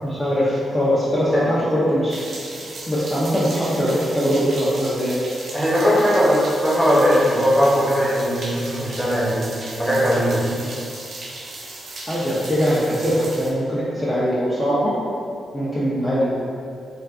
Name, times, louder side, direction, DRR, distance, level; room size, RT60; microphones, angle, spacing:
voice 1, 0.0-2.2 2.9-5.2 12.1-14.9 15.5-16.3, equal, 20° left, -10 dB, 0.6 m, -21 dB
sound 1, 2.1-13.5, right 2 dB, 65° right, 0.4 m, -36 dB
voice 2, 5.5-10.6, equal, ahead, -9 dB, 0.9 m, -19 dB
2.5 x 2.3 x 2.3 m, 2.3 s
cardioid pair, 60°, 0 cm